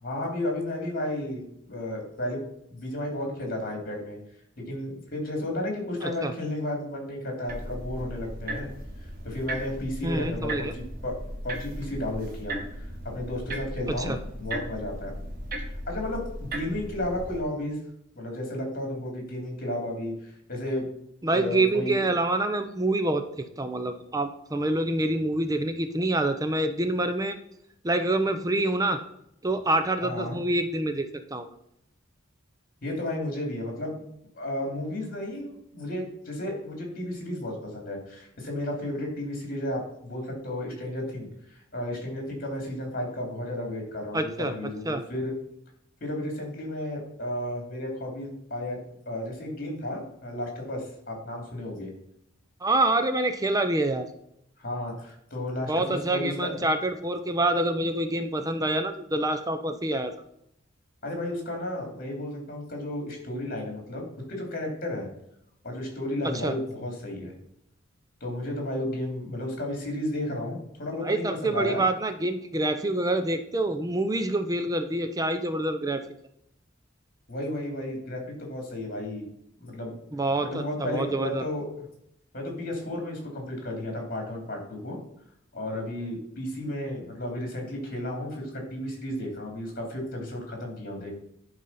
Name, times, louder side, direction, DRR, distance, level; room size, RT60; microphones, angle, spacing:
voice 1, 0.0-2.4 2.7-4.2 4.6-8.7 9.0-11.1 11.4-15.1 15.7-17.8 18.2-20.9 21.3-22.0 30.0-30.4 32.8-34.0 34.3-45.3 46.0-48.8 49.0-51.9 54.6-56.6 61.0-65.1 65.6-67.3 68.2-71.8 77.3-79.3 79.6-79.9 80.4-81.8 82.3-85.0 85.5-91.2, left 1 dB, 45° left, 1 dB, 3.0 m, -33 dB
voice 2, 6.0-6.3 10.0-10.7 14.1-14.2 21.2-27.4 27.8-29.0 29.4-31.1 31.3-31.5 44.1-44.5 44.9-45.0 52.6-54.1 55.7-60.1 66.2-66.5 71.0-76.0 80.1-81.4, right 2 dB, 20° right, 8 dB, 0.6 m, -26 dB
sound 1, 7.5-17.4, right 1 dB, 50° right, 1.4 m, -36 dB
10.5 x 4.1 x 5.6 m, 0.75 s
head